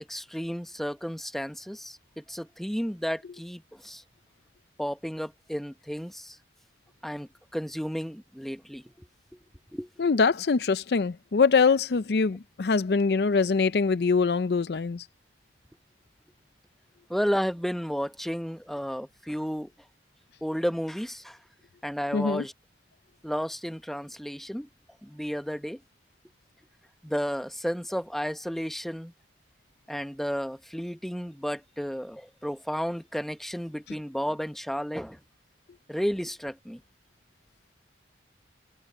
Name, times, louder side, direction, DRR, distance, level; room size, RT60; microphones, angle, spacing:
voice 1, 0.1-4.0 4.8-6.4 7.0-9.1 9.7-9.9 17.1-19.7 20.4-21.4 21.8-22.5 23.2-24.7 25.0-25.8 27.0-29.1 29.9-35.2 35.9-36.8, equal, ahead, 0.8 m, -32 dB
voice 2, 10.0-15.0 22.1-22.4, left 4 dB, 65° left, 0.5 m, -23 dB
head